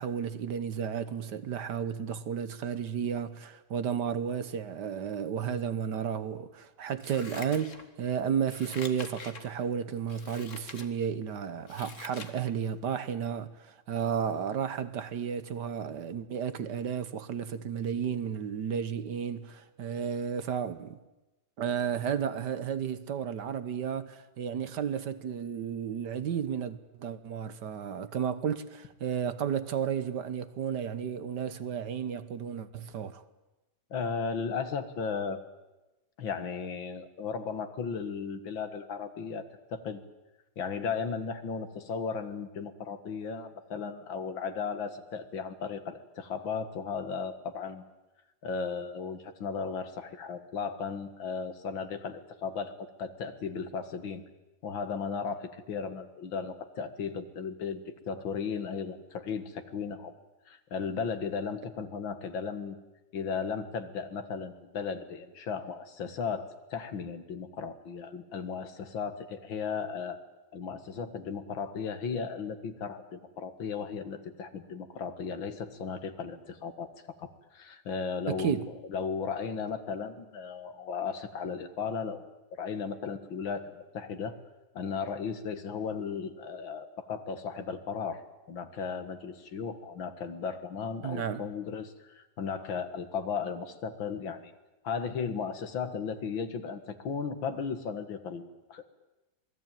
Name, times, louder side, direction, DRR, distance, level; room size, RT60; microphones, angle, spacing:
voice 1, 0.0-21.0 21.6-33.2 78.3-78.7 91.0-91.4, right 8 dB, 65° right, 1.6 m, -33 dB
Scissors, 7.0-8.1 8.4-9.5 10.1-10.9 11.3-12.4 12.8-12.9, left 4 dB, 40° left, 1.9 m, -45 dB
voice 2, 33.9-35.4 36.2-40.0 40.6-47.9 48.4-52.7 53.0-54.2 54.6-60.1 60.5-62.8 63.1-70.2 70.5-76.9 77.2-78.6 78.9-84.4 84.7-88.2 88.5-94.5 94.8-98.8, left 6 dB, 90° left, 2.5 m, -35 dB
27.0 x 19.5 x 9.1 m
omnidirectional pair, 2.1 m